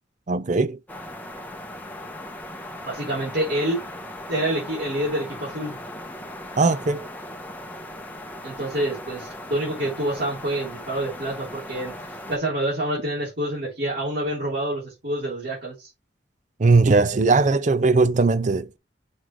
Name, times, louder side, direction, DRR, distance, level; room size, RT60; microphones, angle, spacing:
voice 1, 0.3-0.8 6.6-7.1 16.6-18.8, right 3 dB, 40° right, 0.5 m, -19 dB
sound 1, 0.9-12.4, left 1 dB, 10° left, 1.2 m, -38 dB
voice 2, 2.8-3.8 4.3-5.8 8.4-11.9 12.3-15.9, right 1 dB, 60° right, 3.5 m, -27 dB
6.3 x 3.8 x 4.7 m
head